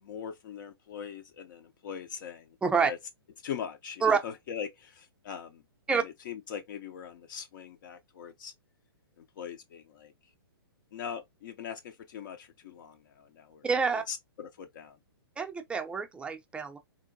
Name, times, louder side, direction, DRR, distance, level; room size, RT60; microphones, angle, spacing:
voice 1, 0.0-3.0 3.4-5.6 5.9-8.5 9.2-10.1 10.9-13.6 14.1-15.0, left 8 dB, 55° left, 0.4 m, -41 dB
voice 2, 2.6-2.9 4.0-4.2 5.9-6.0 13.6-14.0 15.4-16.8, right 5 dB, 10° right, 0.4 m, -27 dB
3.7 x 2.2 x 2.5 m
hypercardioid pair, 125°, 13 cm